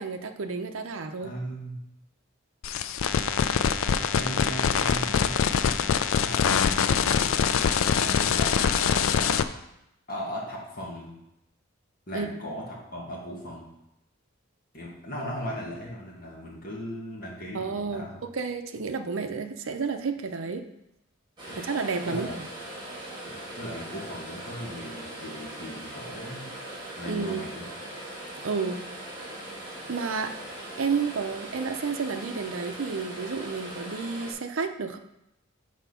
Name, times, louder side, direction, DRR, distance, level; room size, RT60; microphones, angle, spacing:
voice 1, 0.0-1.3 12.1-12.3 17.5-20.7 21.5-22.3 27.1-27.4 28.4-28.8 29.9-30.3 30.8-35.0, right 5 dB, 75° right, 6 dB, 0.6 m, -31 dB
voice 2, 1.2-1.8 4.1-9.3 10.1-11.2 12.1-13.7 14.7-18.2 21.5-21.6 22.0-22.4 23.3-26.5 27.0-27.7, equal, 45° left, -4 dB, 2.0 m, -38 dB
sound 1, 2.6-9.4, left 7 dB, 80° left, 0.4 m, -24 dB
sound 2, 21.4-34.3, right 1 dB, 20° right, 1.9 m, -40 dB
6.3 x 4.5 x 5.6 m, 0.84 s
head